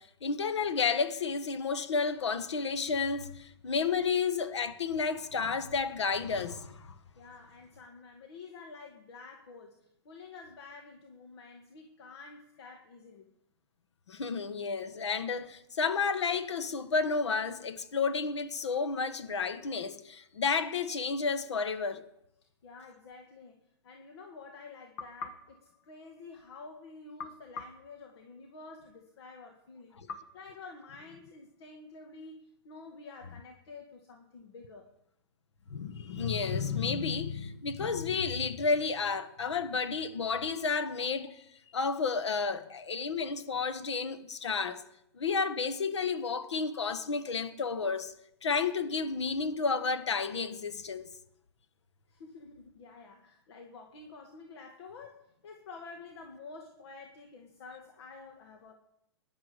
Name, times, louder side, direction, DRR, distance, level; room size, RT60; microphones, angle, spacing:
voice 1, 0.0-6.9 14.1-22.0 35.7-41.4 41.7-44.8 45.2-48.1 48.4-51.1, left 5 dB, 90° left, 1.4 m, -31 dB
voice 2, 7.1-13.3 22.6-23.6 23.8-34.9 52.1-58.7, left 4 dB, 65° left, 2.0 m, -49 dB
sound 1, 25.0-26.6 27.2-28.8 30.1-31.4, left 4 dB, 50° left, 1.8 m, -47 dB
19.0 x 11.0 x 5.1 m
hypercardioid pair, 135°, 14 cm